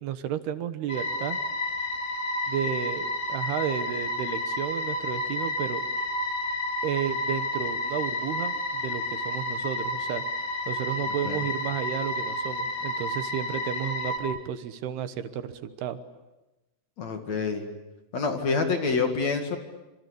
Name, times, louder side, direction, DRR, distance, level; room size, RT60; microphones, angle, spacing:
voice 1, 0.0-1.4 2.5-5.8 6.8-10.2 10.7-16.0, right 9 dB, 70° right, 10 dB, 2.8 m, -32 dB
sound 1, 0.9-14.2, left 2 dB, 20° left, 4.8 m, -31 dB
voice 2, 17.0-17.7 18.1-19.6, left 4 dB, 45° left, 5 dB, 2.6 m, -27 dB
27.0 x 26.5 x 8.3 m, 1.0 s
omnidirectional pair, 5.6 m